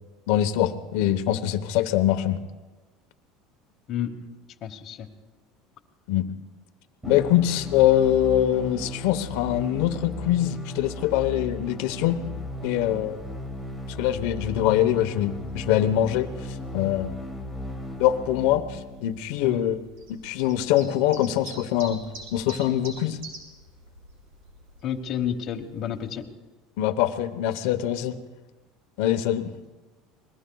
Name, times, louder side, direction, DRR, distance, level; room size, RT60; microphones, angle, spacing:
voice 1, 0.3-2.4 6.1-6.3 7.1-12.2 12.6-13.2 13.9-17.1 18.0-19.8 20.1-22.0 22.3-23.2 26.8-28.1 29.0-29.5, left 12 dB, 75° left, 10 dB, 1.0 m, -23 dB
voice 2, 4.6-5.1 19.4-19.6 24.8-26.2, left 9 dB, 45° left, 3 dB, 1.3 m, -30 dB
sound 1, 7.0-19.0, left 1 dB, 10° right, 1.9 m, -36 dB
sound 2, 12.3-26.2, right 2 dB, 80° right, 5.0 m, -48 dB
27.0 x 21.0 x 2.3 m, 1.2 s
supercardioid pair, 135°, 0 cm